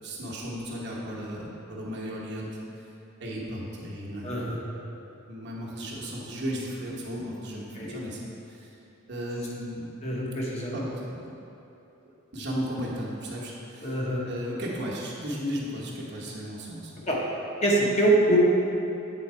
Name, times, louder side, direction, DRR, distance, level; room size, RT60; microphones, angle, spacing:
voice 1, 0.0-2.6 3.2-4.5 5.3-8.2 8.5-8.7 9.1-10.0 10.7-11.3 12.0-14.0 14.3-17.0, equal, 55° right, -5 dB, 1.1 m, -35 dB
voice 2, 4.2-4.6 7.8-7.9 10.0-10.7 13.8-14.2 17.1-17.2 17.6-18.4, right 2 dB, 30° left, -4 dB, 1.0 m, -24 dB
7.8 x 3.9 x 4.4 m, 3.0 s
head